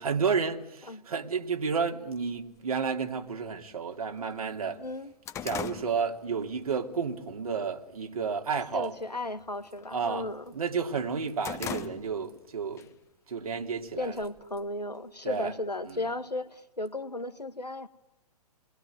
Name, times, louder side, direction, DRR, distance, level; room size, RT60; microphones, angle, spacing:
voice 1, 0.0-4.8 5.4-8.9 9.9-12.9 13.3-14.3 15.2-15.5 15.8-16.1, right 5 dB, 65° right, 3.0 m, -31 dB
sound 1, 2.4-2.5 3.4-3.5 3.9-4.0 4.4-6.8 7.2-7.5 7.9-8.4 8.7-9.0 9.3-10.6 10.9-12.4 12.8-12.9 13.8-14.7, left 9 dB, 15° left, 1.1 m, -40 dB
voice 2, 4.8-5.1 8.7-10.5 14.0-17.9, left 2 dB, 85° left, 1.9 m, -35 dB
29.5 x 21.5 x 9.4 m
figure-of-eight pair, 125°, 20 cm